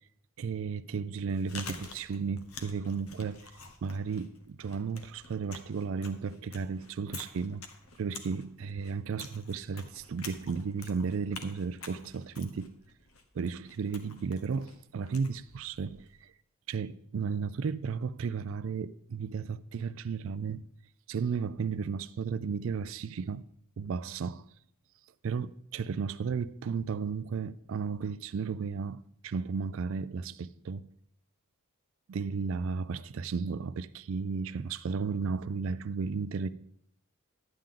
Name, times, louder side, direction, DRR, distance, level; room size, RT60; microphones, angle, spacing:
voice 1, 0.4-3.5 3.8-7.6 8.0-12.7 13.3-16.3 16.7-20.7 21.1-23.4 23.8-24.4 25.2-30.8 32.1-36.5, right 5 dB, 65° right, 0.4 m, -34 dB
Chewing mastication, 1.2-16.2, left 4 dB, 80° left, 1.2 m, -49 dB
11.5 x 9.0 x 3.8 m
head